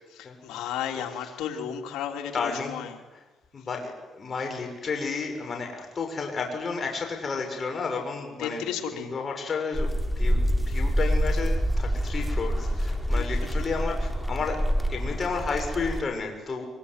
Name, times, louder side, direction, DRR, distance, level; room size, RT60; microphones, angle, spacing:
voice 1, 0.2-3.0 8.4-9.1 13.1-13.5, left 8 dB, 90° left, 3 dB, 3.3 m, -33 dB
voice 2, 2.3-2.8 3.5-8.7 8.9-14.6 14.9-16.7, left 4 dB, 40° left, 3 dB, 6.8 m, -32 dB
sound 1, 9.7-16.0, equal, ahead, 3.4 m, -26 dB
24.5 x 24.0 x 9.7 m, 1.1 s
cardioid pair, 90°, 0 cm